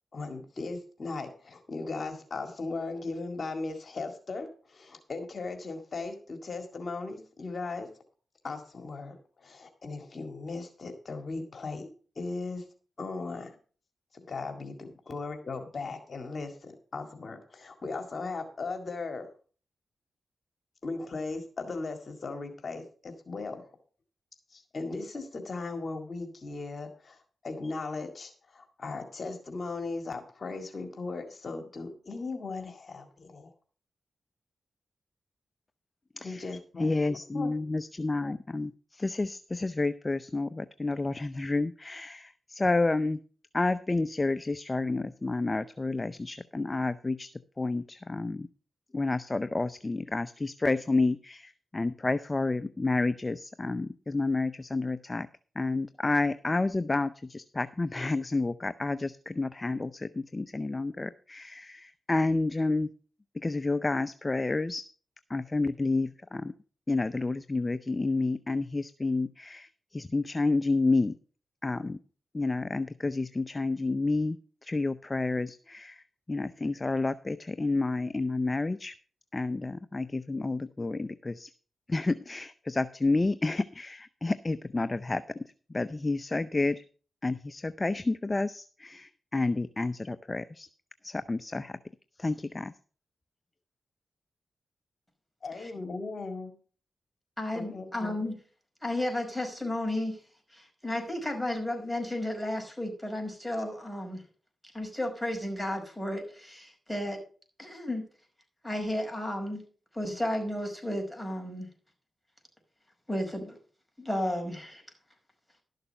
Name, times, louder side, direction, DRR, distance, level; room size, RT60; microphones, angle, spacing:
voice 1, 0.1-7.9 8.4-11.9 12.2-12.7 13.0-13.6 14.1-19.3 20.8-23.7 24.5-33.5 36.2-37.0 37.3-37.5 95.4-96.5 97.5-98.1, left 3 dB, 55° left, 5 dB, 1.9 m, -37 dB
voice 2, 36.2-36.5 36.8-43.2 43.5-47.3 47.6-48.5 48.9-55.3 55.6-62.9 63.4-64.8 65.3-66.5 66.9-71.1 71.6-72.0 72.3-74.4 74.6-78.9 79.3-81.5 81.9-85.4 85.7-86.8 87.2-90.7 91.0-91.7 92.2-92.7, left 3 dB, 30° left, 13 dB, 0.6 m, -30 dB
voice 3, 97.4-98.3 98.8-100.2 100.5-104.2 104.7-107.2 107.6-108.0 108.6-109.6 109.9-111.7 113.1-113.6 114.0-114.8, left 1 dB, ahead, 1 dB, 5.2 m, -33 dB
12.5 x 6.7 x 5.6 m, 0.40 s
supercardioid pair, 45°, 0 cm